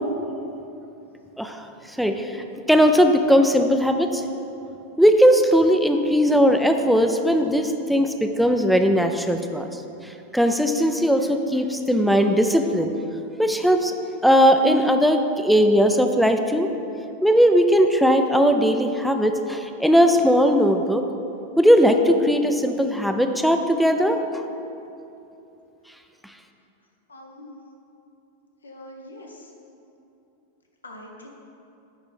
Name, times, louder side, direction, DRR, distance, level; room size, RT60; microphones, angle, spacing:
voice 1, 2.0-2.3 2.7-4.2 5.0-9.7 10.3-12.9 13.4-13.9 14.2-16.7 17.2-21.0 21.6-24.2, equal, ahead, 5 dB, 0.5 m, -18 dB
voice 2, 27.1-27.6 28.6-29.5 30.8-31.3, left 1 dB, 75° left, 1 dB, 1.0 m, -43 dB
9.2 x 4.4 x 5.3 m, 2.8 s
figure-of-eight pair, 90°, 0 cm